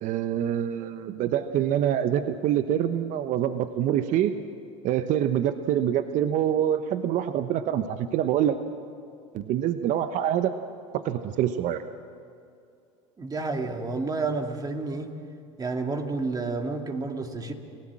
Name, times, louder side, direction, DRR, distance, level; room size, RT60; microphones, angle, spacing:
voice 1, 0.0-4.3 4.8-8.6 9.3-10.5 10.9-11.8, right 10 dB, 50° right, 9 dB, 1.1 m, -25 dB
voice 2, 13.2-15.1 15.6-17.5, right 3 dB, 25° right, 4 dB, 2.5 m, -30 dB
29.5 x 17.0 x 7.6 m, 2.4 s
hypercardioid pair, 90°, 16 cm